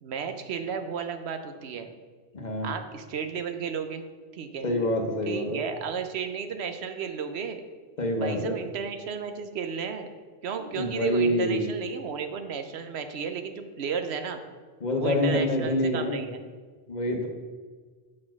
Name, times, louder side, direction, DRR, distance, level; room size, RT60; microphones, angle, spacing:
voice 1, 0.0-1.9 2.6-4.0 4.3-4.7 5.2-7.6 8.2-10.1 10.4-14.4 15.0-16.4, right 6 dB, 80° right, 7 dB, 1.0 m, -33 dB
voice 2, 2.3-2.7 4.6-5.6 8.0-8.6 10.6-11.7 14.8-16.3 16.9-17.3, left 1 dB, 45° left, 3 dB, 1.0 m, -26 dB
7.5 x 4.2 x 5.9 m, 1.5 s
omnidirectional pair, 1.1 m